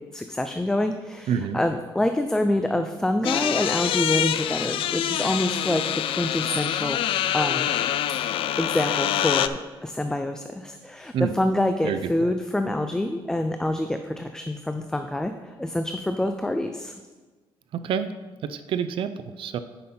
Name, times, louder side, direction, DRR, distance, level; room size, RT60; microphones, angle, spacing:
voice 1, 0.0-7.0 7.3-7.7 8.6-16.9, left 1 dB, 5° left, 6 dB, 0.3 m, -26 dB
voice 2, 1.3-1.6 11.1-11.3 11.8-12.3 17.7-18.1 18.4-19.6, right 7 dB, 70° right, 11 dB, 0.4 m, -27 dB
sound 1, 3.2-9.5, left 11 dB, 75° left, 0.4 m, -25 dB
9.9 x 5.7 x 4.3 m, 1.3 s
cardioid pair, 145°, 9 cm